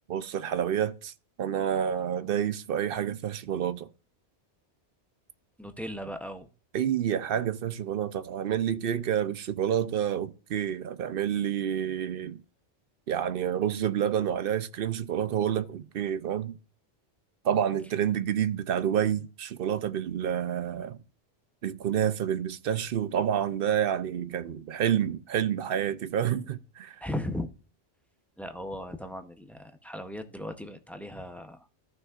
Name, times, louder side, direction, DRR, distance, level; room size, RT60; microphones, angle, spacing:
voice 1, 0.1-1.1 1.4-3.9 6.7-12.4 13.1-16.6 17.4-21.0 21.6-27.0, right 9 dB, 60° right, 0.7 m, -28 dB
voice 2, 5.6-6.5 27.0-27.5 28.4-31.7, left 1 dB, ahead, 0.5 m, -37 dB
14.5 x 6.1 x 2.4 m
omnidirectional pair, 1.1 m